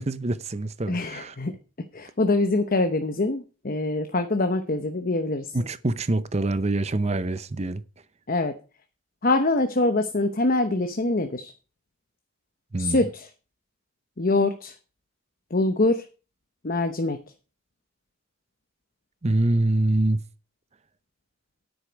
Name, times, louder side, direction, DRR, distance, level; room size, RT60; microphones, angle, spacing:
voice 1, 0.0-1.3 5.5-7.8 12.7-13.0 19.2-20.2, right 2 dB, 30° right, 0.6 m, -25 dB
voice 2, 0.9-1.5 1.9-5.6 8.3-8.6 9.2-11.5 12.8-13.3 14.2-14.7 15.5-16.1 16.6-17.2, left 2 dB, 45° left, 0.9 m, -24 dB
10.0 x 7.9 x 5.2 m
head